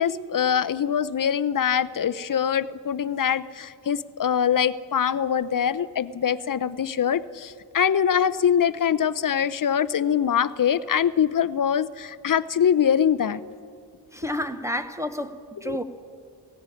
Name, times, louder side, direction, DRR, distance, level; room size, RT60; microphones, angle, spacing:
voice 1, 0.0-13.4 15.6-15.8, left 8 dB, 50° left, 0.7 m, -23 dB
voice 2, 14.1-15.8, left 1 dB, 5° right, 1.0 m, -30 dB
17.0 x 15.5 x 9.8 m
wide cardioid pair, 80°, 43 cm